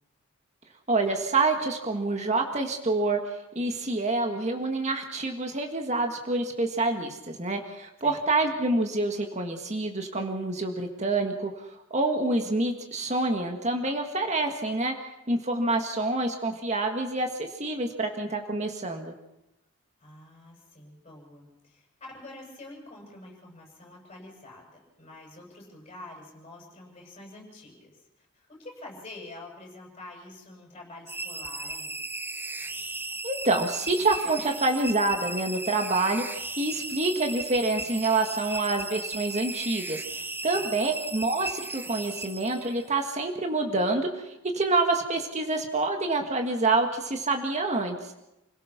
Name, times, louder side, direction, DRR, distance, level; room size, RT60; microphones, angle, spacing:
voice 1, 0.9-11.5 11.9-14.9 15.3-19.1 33.2-40.0 40.4-48.1, right 2 dB, 35° right, 4 dB, 1.8 m, -27 dB
voice 2, 20.0-21.9 22.1-32.0 40.5-40.7, left 2 dB, 30° left, -1 dB, 7.8 m, -47 dB
sound 1, 31.1-42.9, right 2 dB, 10° right, 0.6 m, -36 dB
29.0 x 17.0 x 6.0 m, 0.91 s
head